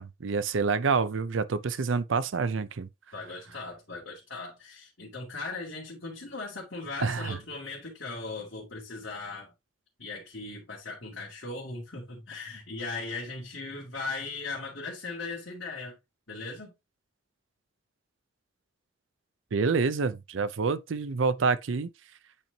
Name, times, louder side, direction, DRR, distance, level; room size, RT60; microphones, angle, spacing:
voice 1, 0.0-2.9 7.0-7.4 19.5-21.9, right 4 dB, 80° right, 0.5 m, -27 dB
voice 2, 3.1-9.5 10.0-16.0 16.3-16.7, left 3 dB, 65° left, 2.3 m, -38 dB
8.7 x 4.4 x 2.8 m
head